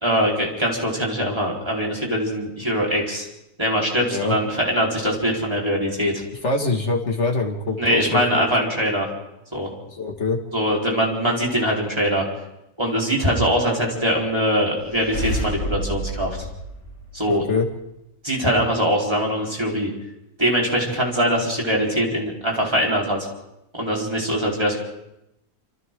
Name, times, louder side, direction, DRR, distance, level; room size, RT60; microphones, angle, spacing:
voice 1, 0.0-3.3 3.6-6.2 7.8-9.1 9.5-9.7 10.5-12.3 12.8-16.4 17.1-17.4 18.2-19.9 20.4-23.2 23.7-24.8, equal, 15° right, -2 dB, 4.2 m, -22 dB
voice 2, 6.4-8.4 9.9-10.4 17.3-17.7, left 3 dB, 50° left, 2 dB, 2.5 m, -24 dB
sound 1, 14.8-17.6, equal, 75° left, 6.5 m, -30 dB
27.0 x 26.5 x 3.8 m, 0.88 s
omnidirectional pair, 1.6 m